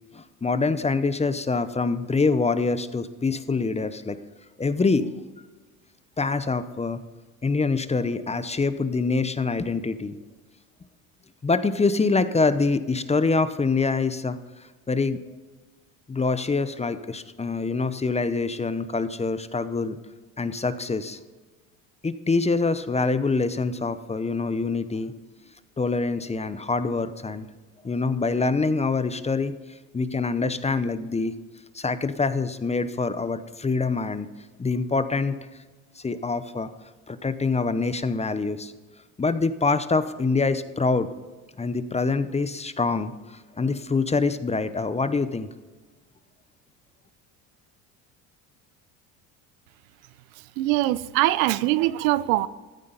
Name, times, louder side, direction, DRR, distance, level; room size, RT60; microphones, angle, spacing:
voice 1, 0.1-4.2 4.6-5.1 6.2-7.0 7.4-10.2 11.4-14.4 14.9-15.2 16.1-20.0 20.4-21.2 22.0-25.1 25.8-27.5 27.8-29.6 29.9-31.3 31.7-34.3 34.6-35.4 36.0-36.7 37.1-38.7 39.2-41.1 41.6-45.5, left 4 dB, 15° left, 13 dB, 0.7 m, -25 dB
voice 2, 50.6-52.5, right 16 dB, 90° right, 17 dB, 0.6 m, -22 dB
14.5 x 9.6 x 3.9 m, 1.3 s
supercardioid pair, 85°, 40 cm